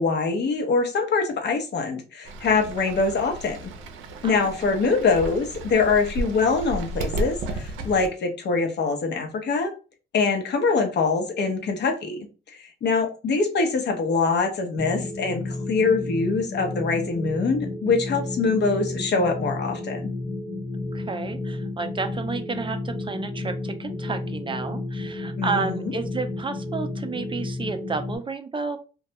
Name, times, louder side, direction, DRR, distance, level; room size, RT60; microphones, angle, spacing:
voice 1, 0.0-3.7 4.2-9.7 10.1-20.1 25.4-25.9, left 4 dB, 60° left, 4 dB, 0.7 m, -24 dB
Fowl / Bird, 2.2-8.1, right 2 dB, 90° right, 0.5 m, -33 dB
voice 2, 4.2-4.6 20.9-28.8, right 4 dB, 25° right, 7 dB, 0.3 m, -31 dB
sound 1, 14.8-28.2, left 2 dB, 20° left, 0.8 m, -32 dB
2.2 x 2.1 x 2.8 m, 0.34 s
cardioid pair, 90°, 20 cm